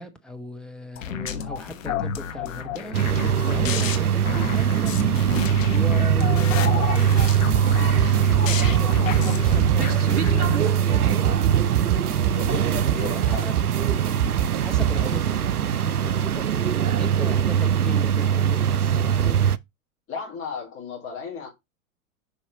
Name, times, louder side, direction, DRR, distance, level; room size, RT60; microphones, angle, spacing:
voice 1, 0.0-3.0 3.4-5.1 5.7-7.3 8.0-11.5 12.8-13.5 14.6-16.4 17.0-19.4, left 1 dB, ahead, 0.4 m, -37 dB
sound 1, 1.0-10.6, left 8 dB, 60° left, 1.4 m, -30 dB
sound 2, 2.9-19.6, right 9 dB, 85° right, 0.5 m, -22 dB
sound 3, 7.2-15.4, right 10 dB, 45° right, 1.0 m, -27 dB
voice 2, 12.3-13.6 14.9-15.1 20.1-21.5, left 6 dB, 30° left, 4.3 m, -35 dB
7.1 x 5.6 x 3.8 m
figure-of-eight pair, 90°, 44 cm